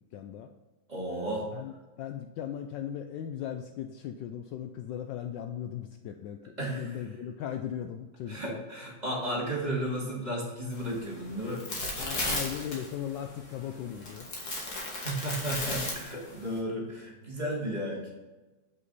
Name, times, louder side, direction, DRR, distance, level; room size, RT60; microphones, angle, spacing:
voice 1, 0.1-0.5 1.1-8.6 11.9-14.3, left 9 dB, 75° left, 6 dB, 1.1 m, -38 dB
voice 2, 0.9-1.5 6.6-7.0 8.3-11.6 14.7-18.1, right 1 dB, 20° right, -5 dB, 2.1 m, -34 dB
sound 1, 10.7-16.6, left 2 dB, 50° left, 2.2 m, -36 dB
8.0 x 5.5 x 4.0 m, 1.1 s
omnidirectional pair, 2.2 m